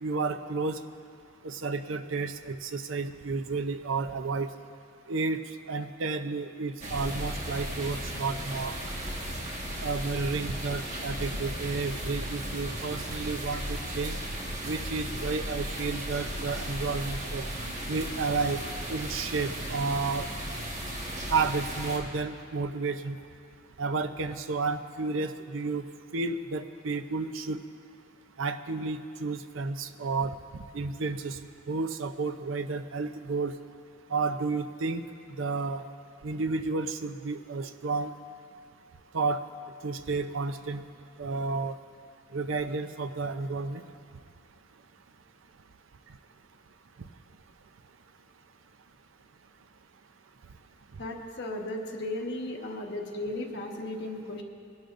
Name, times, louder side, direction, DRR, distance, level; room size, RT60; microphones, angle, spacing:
voice 1, 0.0-0.8 1.4-4.5 5.1-5.4 5.7-8.8 9.8-14.1 14.6-17.5 17.9-18.6 18.9-20.3 21.3-23.2 23.8-25.8 26.1-27.6 28.4-31.4 31.7-33.5 34.1-35.0 35.4-35.8 36.2-38.1 39.1-39.4 39.8-40.8 41.2-41.7 42.3-43.8, right 4 dB, 75° right, 9 dB, 0.6 m, -31 dB
sound 1, 6.8-22.0, right 1 dB, 35° right, 1.5 m, -35 dB
voice 2, 51.0-54.4, left 1 dB, 60° left, 0 dB, 1.3 m, -35 dB
22.0 x 12.0 x 2.6 m, 2.4 s
head